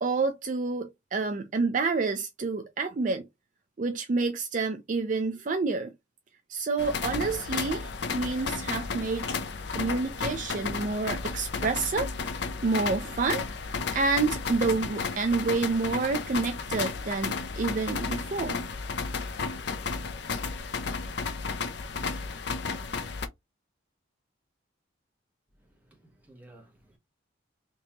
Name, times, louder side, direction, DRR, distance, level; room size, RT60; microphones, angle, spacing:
voice 1, 0.0-3.3 3.8-5.9 6.5-9.4 9.7-12.1 12.6-18.6, right 4 dB, 40° right, 0.4 m, -28 dB
sound 1, 6.8-23.3, left 4 dB, 60° left, 0.5 m, -33 dB
voice 2, 25.6-27.0, right 1 dB, 10° right, 1.2 m, -55 dB
3.6 x 2.8 x 2.8 m
head